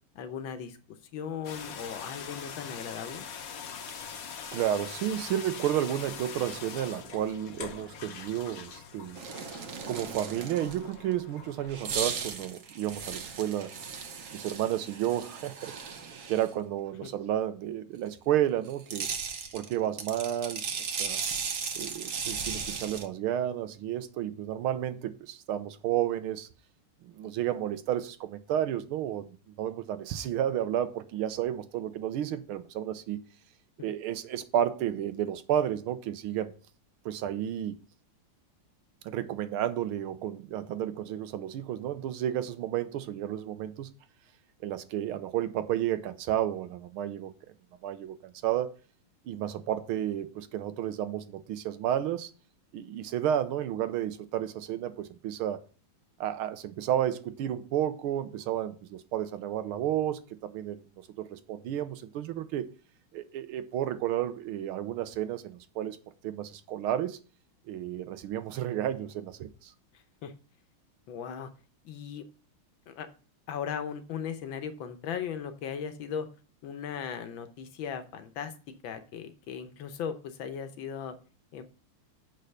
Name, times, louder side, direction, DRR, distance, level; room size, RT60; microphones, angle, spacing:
voice 1, 0.1-3.2 17.0-17.1 69.9-70.3 71.1-71.5 71.8-72.2 72.9-73.1 73.5-76.3 76.6-78.5 78.8-81.1 81.5-81.6, left 7 dB, 70° left, 1.6 m, -37 dB
sound 1, 1.4-12.1, left 6 dB, 55° left, 1.1 m, -43 dB
voice 2, 4.5-9.2 9.9-13.7 14.3-19.1 19.5-20.6 21.0-21.2 21.8-26.5 27.0-33.2 33.8-36.5 37.0-37.8 39.0-43.9 44.6-47.3 47.8-48.8 49.2-52.3 52.7-55.6 56.2-60.8 61.2-62.7 63.1-66.0 66.2-67.2 67.7-69.7, right 11 dB, 90° right, 1.6 m, -32 dB
sound 2, 9.1-10.9 11.7-16.5 18.7-23.1, right 6 dB, 50° right, 1.1 m, -36 dB
6.6 x 5.4 x 6.5 m
omnidirectional pair, 2.3 m